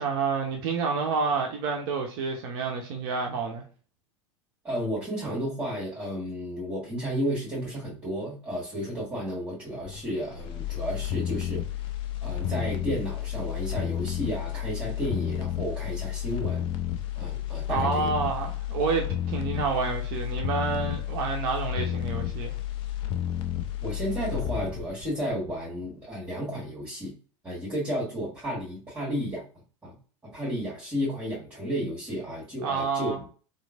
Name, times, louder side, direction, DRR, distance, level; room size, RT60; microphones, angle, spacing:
voice 1, 0.0-3.6 17.7-22.5 32.6-33.2, right 5 dB, 45° right, 0.6 m, -29 dB
voice 2, 4.6-11.6 12.2-16.7 17.2-18.1 23.8-27.1 27.4-29.4 29.8-29.9 30.2-33.1, equal, 10° right, 1.4 m, -32 dB
sound 1, 9.8-25.9 26.3-26.4, left 11 dB, 35° left, 0.4 m, -31 dB
3.0 x 2.5 x 2.4 m
figure-of-eight pair, 80°, 16 cm